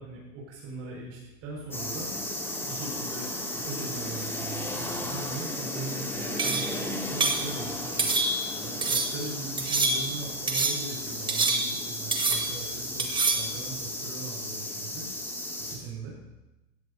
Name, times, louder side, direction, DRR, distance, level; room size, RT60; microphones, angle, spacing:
voice 1, 0.0-2.1 2.6-8.1 8.6-15.1 15.7-16.2, right 3 dB, 40° right, -3 dB, 5.6 m, -40 dB
sound 1, 1.7-15.8, left 1 dB, 5° left, 2.5 m, -34 dB
sound 2, 6.4-6.8 7.2-7.5 8.0-8.5 8.8-9.2 9.6-10.2 10.5-10.9 11.3-11.9 12.1-12.6 13.0-13.5, right 3 dB, 10° right, 1.5 m, -27 dB
17.0 x 14.0 x 2.8 m, 0.98 s
hypercardioid pair, 115°, 39 cm